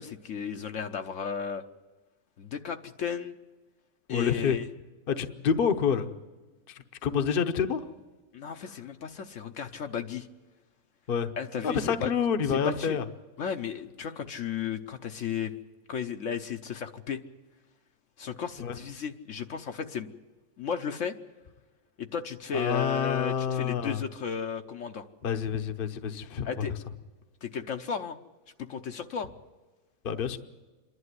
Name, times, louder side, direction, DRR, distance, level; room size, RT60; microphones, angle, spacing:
voice 1, 0.0-1.6 2.4-3.3 4.1-4.7 8.3-10.3 11.4-12.1 12.5-13.0 13.4-15.5 15.9-17.2 18.2-20.1 20.6-21.1 22.0-25.1 26.4-26.7 27.4-28.2 28.7-29.3, left 7 dB, 65° left, 6 dB, 1.1 m, -34 dB
voice 2, 4.1-4.6 5.1-6.1 6.7-7.8 11.1-11.3 11.6-13.0 18.6-18.8 22.5-24.0 25.2-26.7 30.0-30.4, left 7 dB, 45° left, 9 dB, 1.0 m, -28 dB
26.5 x 11.5 x 9.6 m, 1.2 s
omnidirectional pair, 1.5 m